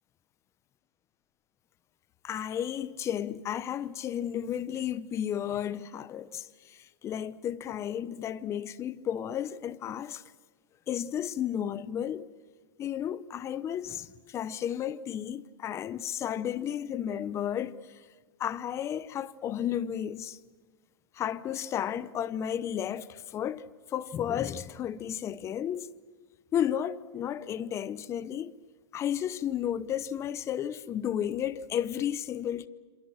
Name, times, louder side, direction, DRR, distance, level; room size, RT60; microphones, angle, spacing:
voice 1, 2.2-6.8 7.0-10.2 10.9-12.3 12.8-17.8 18.4-20.4 21.2-23.6 23.9-25.9 26.5-28.5 28.9-32.7, left 10 dB, 20° left, 0.8 m, -33 dB
27.5 x 26.5 x 7.6 m
hypercardioid pair, 145°, 14 cm